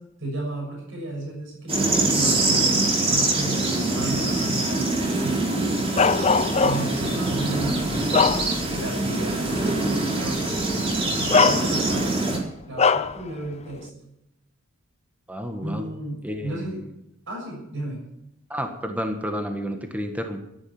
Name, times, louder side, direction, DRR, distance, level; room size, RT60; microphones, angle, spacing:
voice 1, 0.2-5.4 6.6-8.2 8.7-10.4 11.2-12.1 12.6-13.9 15.6-16.8 17.3-18.0, right 1 dB, 60° right, -2 dB, 6.8 m, -33 dB
sound 1, 1.7-12.4, right 2 dB, 25° right, 4.4 m, -24 dB
Bark, 6.0-7.0 7.6-8.9 9.3-9.5 10.6-10.7 11.3-12.1 12.8-13.2, left 5 dB, 30° left, 0.6 m, -21 dB
voice 2, 15.3-15.9 16.2-16.9 18.5-20.4, equal, 5° right, 5 dB, 1.5 m, -31 dB
12.5 x 11.0 x 8.7 m, 0.85 s
head